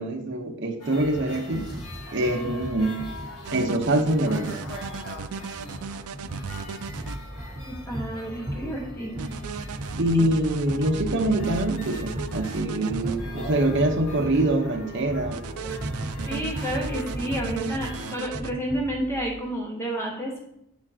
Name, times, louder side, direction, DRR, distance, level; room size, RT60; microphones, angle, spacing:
voice 1, 0.0-1.7 2.1-3.0 3.5-4.6 10.0-15.4, right 1 dB, 55° right, 3 dB, 0.9 m, -24 dB
sound 1, 0.8-18.2, left 1 dB, 85° left, 2.1 m, -43 dB
sound 2, 1.0-19.4, right 1 dB, 25° right, 2.6 m, -37 dB
sound 3, 3.4-7.2 9.2-13.2 15.3-18.5, right 7 dB, 80° right, 0.4 m, -36 dB
voice 2, 7.7-9.2 16.3-20.4, right 1 dB, 10° left, -2 dB, 1.3 m, -30 dB
9.5 x 4.9 x 2.8 m, 0.76 s
head